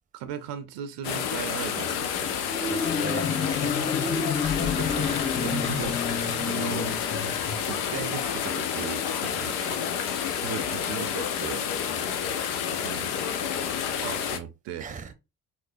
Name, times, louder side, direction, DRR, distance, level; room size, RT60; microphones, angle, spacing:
voice 1, 0.1-2.4 4.4-6.9 7.7-9.8 10.4-11.7 12.8-13.1 14.0-14.8, right 9 dB, 70° right, 0.6 m, -37 dB
sound 1, 1.0-14.4, left 8 dB, 85° left, 0.5 m, -29 dB
Marimba xylophone, 2.5-8.0, left 5 dB, 15° left, 0.3 m, -30 dB
voice 2, 2.6-3.8 9.3-9.5 11.9-12.1 14.7-15.1, right 5 dB, 20° right, 0.6 m, -39 dB
sound 2, 4.4-7.5, left 5 dB, 40° left, 2.0 m, -39 dB
4.2 x 2.1 x 2.5 m
hypercardioid pair, 55°, 44 cm